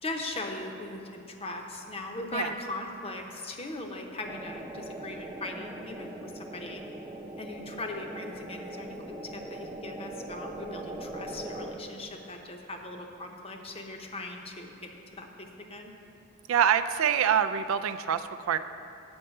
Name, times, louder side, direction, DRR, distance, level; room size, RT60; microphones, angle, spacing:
voice 1, 0.0-6.8 7.4-15.9, left 2 dB, 30° left, 3 dB, 0.7 m, -39 dB
sound 1, 4.2-11.7, right 1 dB, 10° right, 0.6 m, -41 dB
voice 2, 16.5-18.6, right 8 dB, 75° right, 11 dB, 0.4 m, -25 dB
8.0 x 5.4 x 7.6 m, 2.7 s
head